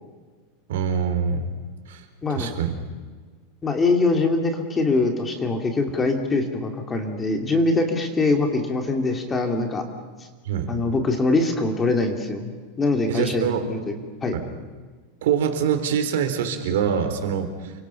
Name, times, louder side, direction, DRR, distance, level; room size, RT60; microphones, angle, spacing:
voice 1, 0.7-1.5 1.9-2.0 2.3-2.7 10.5-10.7 13.1-13.7 14.3-14.4 15.2-17.7, right 7 dB, 80° right, 7 dB, 3.9 m, -24 dB
voice 2, 3.6-9.8 10.7-12.5 12.8-14.0 14.2-14.4, left 3 dB, 15° left, 4 dB, 2.4 m, -23 dB
29.0 x 25.0 x 5.7 m, 1.5 s
supercardioid pair, 175°, 0 cm